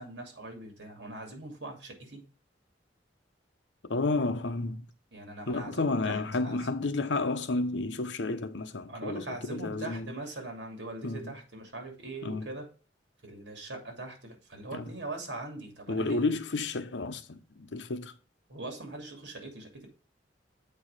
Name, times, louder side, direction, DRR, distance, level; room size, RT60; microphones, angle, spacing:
voice 1, 0.0-2.2 5.1-6.6 8.9-12.7 13.2-16.3 18.5-19.9, right 2 dB, 70° right, 2.7 m, -41 dB
voice 2, 3.8-4.9 5.5-10.2 11.0-11.4 12.2-12.5 14.7-14.9 15.9-18.1, left 3 dB, 80° left, 0.8 m, -31 dB
8.1 x 4.7 x 4.7 m
head